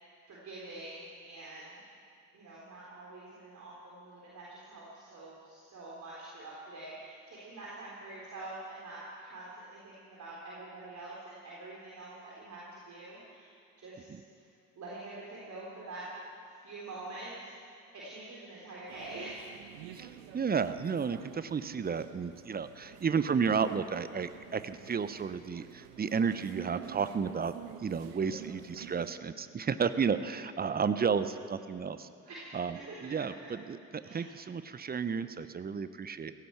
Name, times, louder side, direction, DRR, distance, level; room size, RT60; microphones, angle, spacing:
voice 1, 0.3-1.8 2.3-14.1 14.4-14.5 14.8-16.1 16.6-17.5 17.9-19.4 32.3-33.1 34.0-34.3, right 2 dB, 40° right, -6 dB, 3.8 m, -46 dB
sound 1, 18.9-29.1, right 10 dB, 65° right, 1.0 m, -49 dB
voice 2, 19.9-27.5 27.8-32.1 32.5-36.3, right 6 dB, 20° right, 12 dB, 0.8 m, -32 dB
16.5 x 15.5 x 4.7 m, 2.3 s
hypercardioid pair, 60°, 43 cm